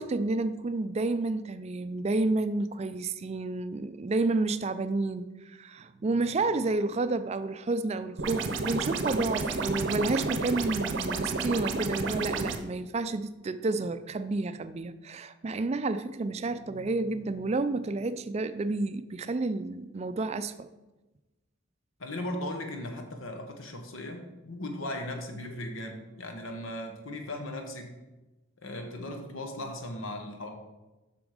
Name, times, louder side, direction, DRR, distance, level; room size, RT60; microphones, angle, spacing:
voice 1, 0.0-20.7, right 3 dB, 30° right, 12 dB, 0.4 m, -30 dB
sound 1, 8.2-12.6, right 3 dB, 60° right, 0.7 m, -31 dB
voice 2, 22.0-28.0 28.6-30.5, left 1 dB, 80° left, 4 dB, 1.2 m, -37 dB
7.1 x 6.1 x 4.9 m, 1.1 s
head